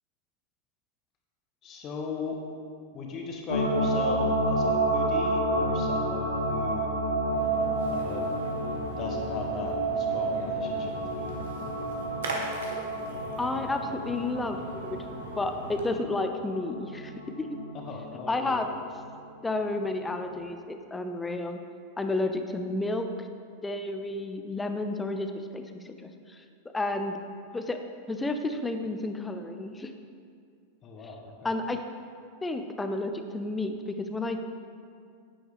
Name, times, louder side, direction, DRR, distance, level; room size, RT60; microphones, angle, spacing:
voice 1, 1.6-2.4 2.9-6.9 7.9-8.3 9.0-11.3 17.7-18.6 30.8-31.5, left 4 dB, 30° left, 1 dB, 1.3 m, -38 dB
sound 1, 3.5-19.2 19.6-19.7, right 1 dB, 85° left, 1.3 m, -30 dB
Splash splatter, 7.3-16.0, right 2 dB, 60° right, 1.5 m, -41 dB
voice 2, 13.4-15.0 15.4-17.6 18.3-18.7 19.4-21.6 22.0-23.3 23.6-26.4 26.7-27.2 27.5-27.8 28.1-29.9 31.4-31.8 32.4-34.4, left 2 dB, 10° left, 7 dB, 0.7 m, -31 dB
10.5 x 9.5 x 3.5 m, 2.3 s
figure-of-eight pair, 90°, 0 cm